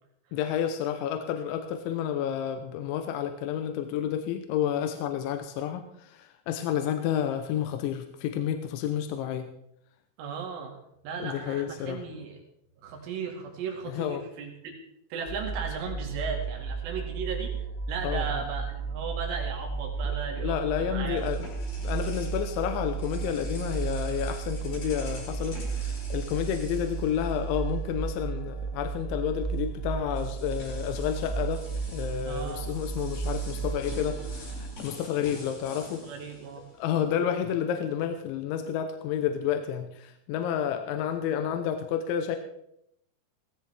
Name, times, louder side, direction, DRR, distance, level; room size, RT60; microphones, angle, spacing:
voice 1, 0.3-9.5 11.2-12.0 13.9-14.2 18.0-18.3 20.0-21.5 21.8-31.6 31.9-36.0 36.8-42.4, left 9 dB, 80° left, 6 dB, 3.1 m, -30 dB
voice 2, 10.2-10.8 11.0-12.4 12.8-14.7 15.1-17.5 17.9-21.3 32.3-32.7 36.0-36.6, right 5 dB, 85° right, 1 dB, 4.6 m, -36 dB
sound 1, 15.2-34.7, right 5 dB, 15° left, 1.7 m, -33 dB
sound 2, 20.9-27.9 28.2-28.4 29.5-29.6 30.1-37.2, left 2 dB, 60° left, 7.8 m, -47 dB
17.5 x 16.5 x 3.4 m, 0.76 s
omnidirectional pair, 5.5 m